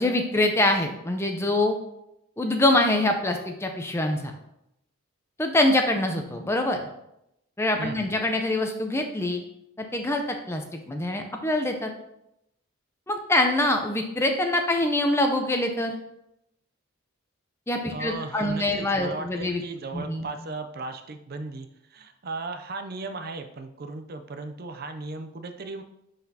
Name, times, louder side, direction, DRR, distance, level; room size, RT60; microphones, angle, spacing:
voice 1, 0.0-1.8 2.4-4.3 5.4-6.8 7.6-9.4 9.8-11.9 13.1-16.0 17.7-19.6 19.9-20.3, left 1 dB, 10° left, 4 dB, 0.5 m, -24 dB
voice 2, 17.9-25.8, right 3 dB, 45° right, 7 dB, 0.5 m, -36 dB
10.0 x 4.1 x 2.8 m, 0.82 s
head